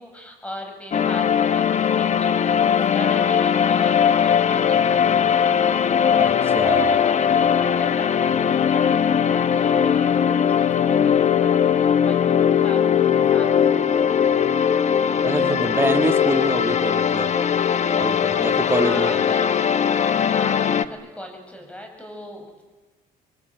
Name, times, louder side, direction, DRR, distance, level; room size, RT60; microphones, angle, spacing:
voice 1, 0.0-5.4 5.8-14.2 18.5-19.6 20.2-22.6, equal, 5° left, 4 dB, 7.4 m, -38 dB
sound 1, 0.9-20.8, left 8 dB, 45° left, 1.2 m, -19 dB
voice 2, 6.5-7.0 15.2-17.3 18.0-19.1, right 2 dB, 15° right, 8 dB, 1.9 m, -25 dB
27.5 x 22.5 x 9.2 m, 1.3 s
cardioid pair, 110°, 17 cm